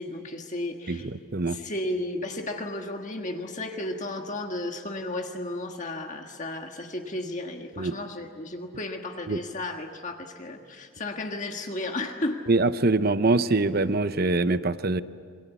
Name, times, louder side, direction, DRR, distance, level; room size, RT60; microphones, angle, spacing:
voice 1, 0.0-1.1 1.5-12.4, left 1 dB, 35° left, 3 dB, 1.5 m, -33 dB
voice 2, 0.9-1.6 7.8-7.9 9.3-9.4 12.5-15.0, right 3 dB, 45° right, 13 dB, 0.8 m, -24 dB
28.0 x 23.5 x 8.3 m, 2.1 s
head